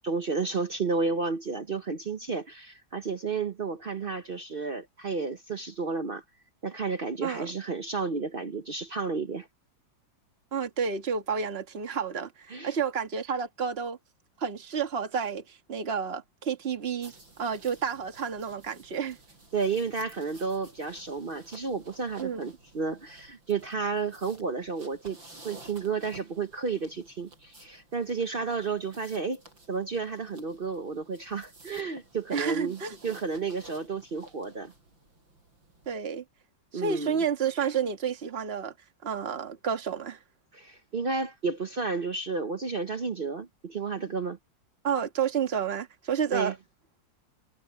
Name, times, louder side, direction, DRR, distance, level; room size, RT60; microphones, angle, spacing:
voice 1, 0.0-6.2 6.6-9.5 12.5-12.8 19.5-25.2 25.4-29.4 29.7-34.7 36.7-37.2 40.5-44.4 46.3-46.5, right 4 dB, 50° right, 0.6 m, -32 dB
voice 2, 10.5-14.0 14.4-19.2 22.2-22.4 32.3-33.0 35.9-36.2 36.7-38.7 39.0-40.2 44.8-46.5, right 6 dB, 35° right, 1.8 m, -30 dB
sound 1, 17.0-36.0, right 2 dB, 80° right, 7.6 m, -53 dB
omnidirectional pair, 2.1 m